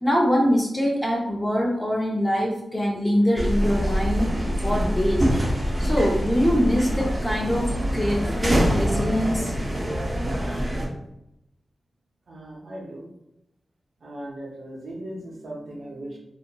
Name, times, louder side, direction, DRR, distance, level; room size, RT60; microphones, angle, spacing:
voice 1, 0.0-4.3 4.6-5.2 5.8-9.5, equal, 15° left, -2 dB, 0.5 m, -23 dB
sound 1, 3.4-10.9, equal, 35° right, 0.6 m, -25 dB
voice 2, 12.3-13.1 14.0-16.2, right 1 dB, 80° right, -2 dB, 0.7 m, -38 dB
2.8 x 2.4 x 2.2 m, 0.83 s
wide cardioid pair, 95°, 0 cm